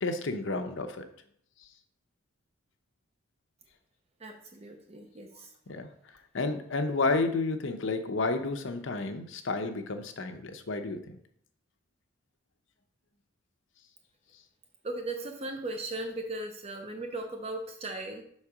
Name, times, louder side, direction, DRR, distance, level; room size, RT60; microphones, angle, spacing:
voice 1, 0.0-1.1 5.7-5.9 6.3-11.2, left 3 dB, 65° left, 7 dB, 0.7 m, -31 dB
voice 2, 4.2-5.5 14.8-18.2, right 2 dB, 30° right, 5 dB, 0.5 m, -37 dB
5.9 x 4.2 x 4.8 m, 0.68 s
head